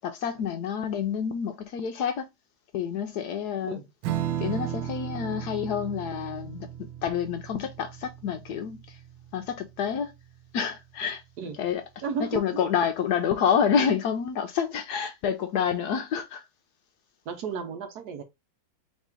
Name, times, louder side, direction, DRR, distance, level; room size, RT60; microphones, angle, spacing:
voice 1, 0.0-2.3 2.7-3.8 4.4-9.0 9.3-10.1 10.5-11.2 11.6-11.8 12.2-16.4, left 7 dB, 70° left, 1.0 m, -28 dB
Strum, 4.0-10.9, right 11 dB, 85° right, 1.3 m, -36 dB
voice 2, 12.0-12.4 17.3-18.2, right 5 dB, 65° right, 1.2 m, -33 dB
4.2 x 3.4 x 3.5 m
omnidirectional pair, 2.1 m